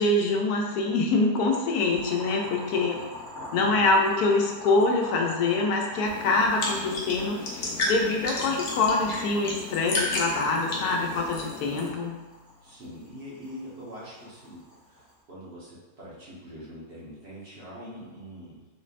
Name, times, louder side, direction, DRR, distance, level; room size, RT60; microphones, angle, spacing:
voice 1, 0.0-3.0 3.5-12.1, left 3 dB, 80° left, 1 dB, 1.1 m, -25 dB
Boiling, 1.9-15.2, left 1 dB, 40° left, 1.1 m, -45 dB
voice 2, 3.5-3.9 12.6-18.7, equal, 40° right, -8 dB, 1.2 m, -43 dB
sound 1, 6.0-11.9, left 2 dB, 60° left, 0.9 m, -32 dB
3.9 x 3.2 x 2.5 m, 1.2 s
omnidirectional pair, 1.6 m